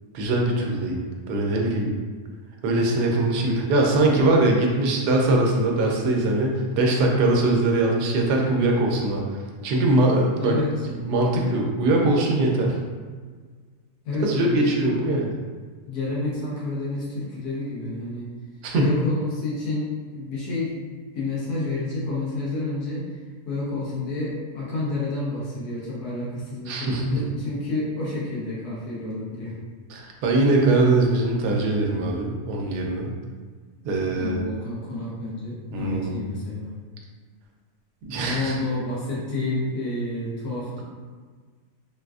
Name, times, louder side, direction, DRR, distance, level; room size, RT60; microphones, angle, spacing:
voice 1, 0.1-1.0 1.3-1.9 2.6-10.6 10.9-12.7 14.2-15.3 18.6-18.9 26.7-27.5 29.9-33.1 33.8-34.4 35.7-36.3 38.1-38.6, right 2 dB, 90° right, 0 dB, 1.2 m, -22 dB
voice 2, 10.4-10.7 14.0-15.0 15.9-18.3 18.7-19.9 20.1-23.0 23.4-29.5 34.1-36.7 38.2-40.8, left 2 dB, 75° left, -7 dB, 1.5 m, -29 dB
3.7 x 2.4 x 2.3 m, 1.5 s
omnidirectional pair, 1.7 m